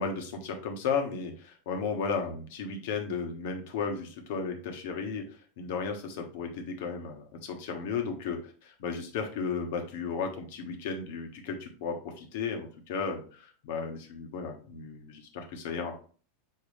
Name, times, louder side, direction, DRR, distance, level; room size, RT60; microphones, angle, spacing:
voice 1, 0.0-16.0, left 5 dB, 55° left, 4 dB, 1.4 m, -34 dB
6.8 x 4.7 x 3.2 m, 0.41 s
figure-of-eight pair, 90°, 0 cm